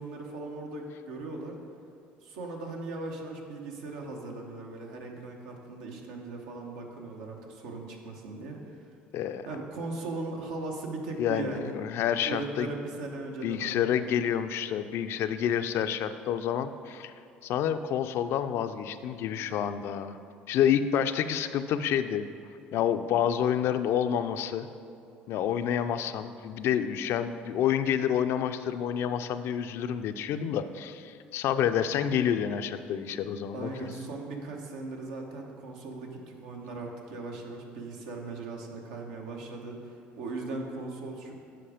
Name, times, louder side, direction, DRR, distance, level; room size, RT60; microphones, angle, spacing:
voice 1, 0.0-1.6 2.2-8.6 9.5-11.7 12.2-14.0 33.5-41.3, right 3 dB, 85° right, 1 dB, 1.1 m, -38 dB
voice 2, 9.1-9.5 11.2-12.7 13.4-17.1 17.4-20.2 20.5-22.3 22.7-24.7 25.3-33.7, left 9 dB, 65° left, 10 dB, 0.4 m, -28 dB
7.8 x 5.0 x 4.9 m, 2.6 s
supercardioid pair, 80°, 5 cm